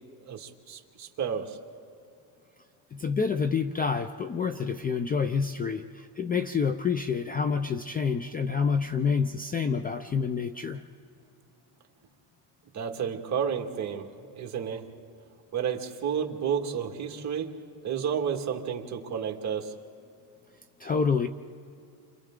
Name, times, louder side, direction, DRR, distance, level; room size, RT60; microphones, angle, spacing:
voice 1, 0.2-1.6 12.7-14.1 14.3-14.8 15.5-17.5 17.8-19.7, right 7 dB, 35° right, 2 dB, 1.9 m, -31 dB
voice 2, 2.9-10.8 20.8-21.3, left 5 dB, 20° left, 9 dB, 0.4 m, -28 dB
30.0 x 25.5 x 3.7 m, 2.5 s
cardioid pair, 135°, 47 cm